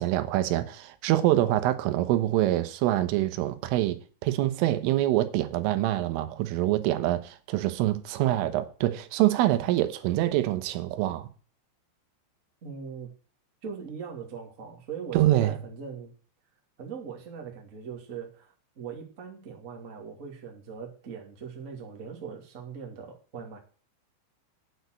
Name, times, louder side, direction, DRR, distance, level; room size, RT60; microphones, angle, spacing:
voice 1, 0.0-11.3 15.1-15.6, right 14 dB, 85° right, 3.5 m, -25 dB
voice 2, 12.6-13.1 13.6-16.1 16.8-23.6, right 6 dB, 30° right, 1.5 m, -40 dB
9.5 x 6.3 x 8.0 m
omnidirectional pair, 5.7 m